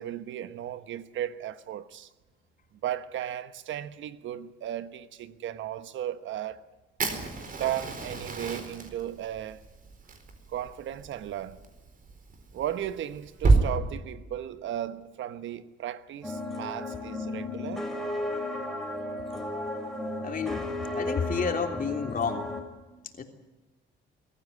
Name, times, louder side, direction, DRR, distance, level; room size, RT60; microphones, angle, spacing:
voice 1, 0.0-2.1 2.8-6.6 7.6-9.6 10.5-11.6 12.5-17.9, right 11 dB, 75° right, 1.2 m, -35 dB
Fire, 7.0-13.6, right 3 dB, 45° right, 4.2 m, -30 dB
sound 1, 16.2-22.6, left 2 dB, ahead, 4.4 m, -34 dB
voice 2, 20.2-20.7 20.9-22.5 23.2-23.3, left 5 dB, 45° left, 3.3 m, -30 dB
22.5 x 14.5 x 9.7 m
cardioid pair, 90°, 20 cm